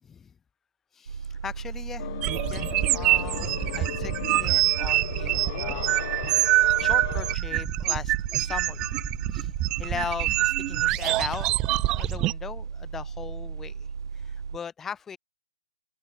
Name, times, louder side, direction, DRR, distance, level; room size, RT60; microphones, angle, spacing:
voice 1, 0.0-0.3 0.9-2.2 2.5-6.0 6.3-6.4 6.8-9.0 9.3-9.5 9.8-11.5 11.9-13.9 14.1-15.2, left 7 dB, 10° left, 6.3 m, -38 dB
sound 1, 1.1-14.6, right 5 dB, 75° right, 2.1 m, -36 dB
sound 2, 2.0-7.4, left 15 dB, 40° left, 2.1 m, -37 dB
sound 3, 2.2-12.3, right 17 dB, 25° right, 1.5 m, -25 dB
hypercardioid pair, 145°, 3 cm